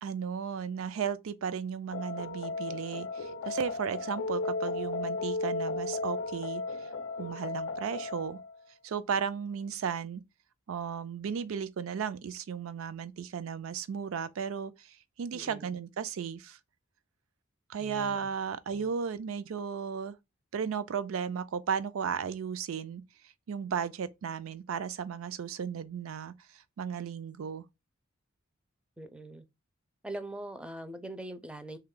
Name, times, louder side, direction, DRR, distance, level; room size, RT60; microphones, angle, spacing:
voice 1, 0.0-6.6 7.2-8.4 8.8-10.2 10.7-16.6 17.7-20.2 20.5-23.0 23.5-26.3 26.8-27.6, right 7 dB, 80° right, 0.4 m, -35 dB
sound 1, 1.9-8.6, left 3 dB, 85° left, 0.5 m, -35 dB
voice 2, 15.3-15.8 17.8-18.3 18.7-18.9 29.0-29.5 30.0-31.8, right 1 dB, 5° right, 0.4 m, -42 dB
3.3 x 2.2 x 3.6 m
head